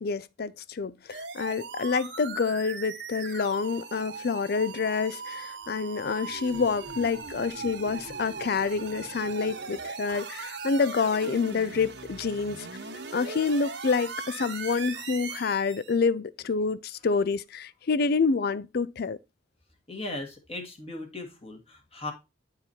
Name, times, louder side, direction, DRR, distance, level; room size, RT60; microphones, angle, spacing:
voice 1, 0.0-12.7 13.1-19.2, left 4 dB, 55° left, 0.5 m, -28 dB
sound 1, 1.1-16.0, right 5 dB, 65° right, 1.3 m, -39 dB
voice 2, 19.9-22.1, left 2 dB, 30° left, 1.8 m, -37 dB
9.5 x 4.7 x 4.2 m
head